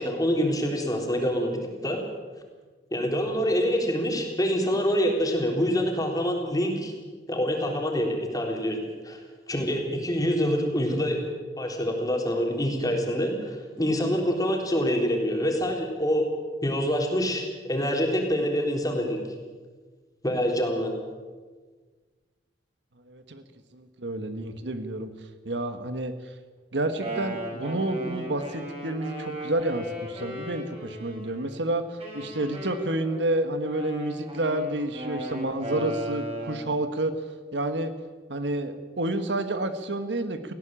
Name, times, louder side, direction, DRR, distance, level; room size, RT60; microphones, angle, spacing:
voice 1, 0.0-2.0 2.9-6.9 7.3-8.8 9.0-9.2 9.5-11.2 11.6-16.3 16.6-19.2 20.2-20.9, equal, 20° left, 1 dB, 3.7 m, -26 dB
voice 2, 23.1-23.4 23.7-25.1 25.4-26.3 26.7-37.1 37.5-37.9 38.3-40.5, right 1 dB, 80° right, 9 dB, 1.4 m, -29 dB
Wind instrument woodwind instrument, 26.8-31.5 32.0-36.7, equal, 35° right, 5.7 m, -36 dB
18.5 x 16.0 x 8.9 m, 1.4 s
head